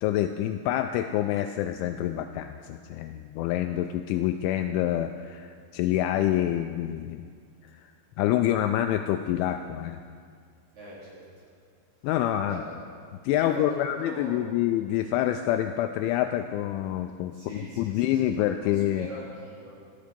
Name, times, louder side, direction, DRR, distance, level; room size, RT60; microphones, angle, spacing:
voice 1, 0.0-7.2 8.2-10.0 12.0-12.6 13.2-19.1, left 12 dB, 85° left, 7 dB, 2.8 m, -27 dB
voice 2, 10.7-11.4 12.5-12.7 13.3-14.4 17.3-19.8, right 1 dB, 40° right, -7 dB, 4.7 m, -42 dB
16.5 x 13.5 x 5.2 m, 2.1 s
omnidirectional pair, 5.7 m